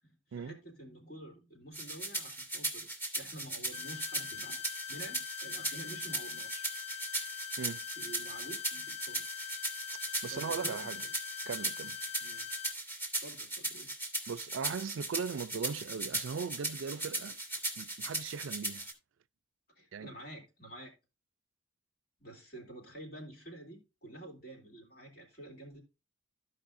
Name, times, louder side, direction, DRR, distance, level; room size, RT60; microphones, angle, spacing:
voice 1, 0.0-2.9 3.1-6.7 7.5-7.6 8.0-9.2 10.3-11.1 12.2-12.4 13.2-13.9 19.7-20.9 22.2-25.8, right 1 dB, 50° left, 3.4 m, -49 dB
sound 1, 1.7-18.9, right 2 dB, 10° left, 2.4 m, -38 dB
sound 2, 3.7-12.7, left 10 dB, 30° left, 0.3 m, -43 dB
voice 2, 10.2-11.1 11.5-12.0 14.3-17.4 17.8-18.8 19.9-20.1, right 6 dB, 85° right, 0.4 m, -38 dB
15.0 x 5.3 x 2.6 m
head